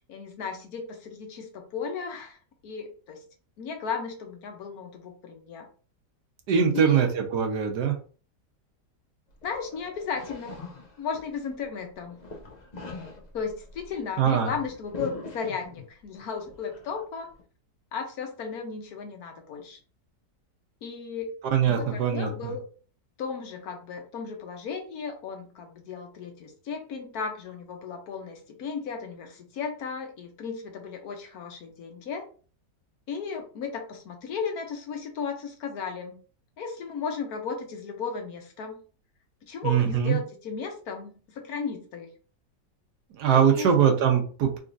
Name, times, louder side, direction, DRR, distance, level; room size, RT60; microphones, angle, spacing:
voice 1, 0.1-2.4 2.6-3.2 3.6-5.7 6.7-7.1 9.4-10.6 11.0-12.2 13.3-17.3 17.9-19.8 20.8-21.3 21.7-22.6 23.2-32.2 33.1-36.2 36.6-38.8 39.5-42.1 43.3-43.7, left 5 dB, 65° left, 3 dB, 1.2 m, -35 dB
voice 2, 6.5-7.9 14.2-14.5 21.5-22.5 39.6-40.2 43.1-44.6, right 7 dB, 75° right, 3 dB, 1.3 m, -22 dB
sound 1, 9.3-11.6 12.0-16.0 16.4-17.4, left 2 dB, 40° left, 0.6 m, -43 dB
3.9 x 3.4 x 2.5 m, 0.39 s
omnidirectional pair, 1.8 m